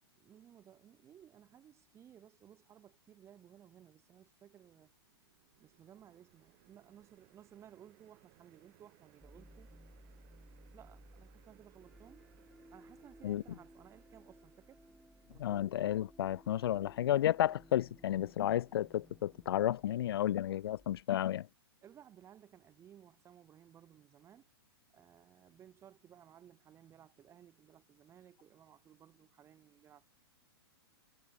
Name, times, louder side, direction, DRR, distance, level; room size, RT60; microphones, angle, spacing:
voice 1, 0.1-4.9 5.6-9.7 10.7-12.2 12.7-14.8 15.3-16.0 21.8-24.5 24.9-30.1, right 10 dB, 20° right, 4.5 m, -59 dB
sound 1, 4.6-15.9, right 28 dB, 45° right, 5.6 m, -68 dB
sound 2, 9.2-21.0, equal, ahead, 1.7 m, -60 dB
voice 2, 15.4-21.5, left 12 dB, 70° left, 1.0 m, -32 dB
hypercardioid pair, 145°, 13 cm